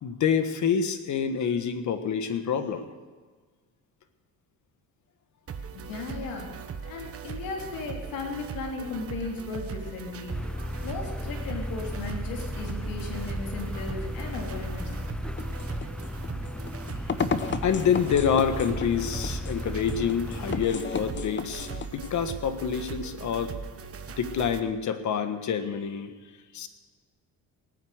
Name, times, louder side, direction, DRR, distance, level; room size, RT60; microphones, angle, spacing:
voice 1, 0.0-2.8 17.6-23.5 24.2-26.1 26.5-26.7, left 7 dB, 55° left, 9 dB, 1.5 m, -27 dB
sound 1, 5.5-24.6, right 5 dB, 40° right, 1.3 m, -39 dB
voice 2, 5.7-6.5 6.8-10.4 10.8-15.0, left 3 dB, 75° left, 0 dB, 3.1 m, -36 dB
sound 2, 10.3-20.7, left 1 dB, 5° left, 0.3 m, -35 dB
sound 3, 15.4-22.1, left 5 dB, 35° left, 1.0 m, -34 dB
19.5 x 9.3 x 6.5 m, 1.5 s
cardioid pair, 95°, 34 cm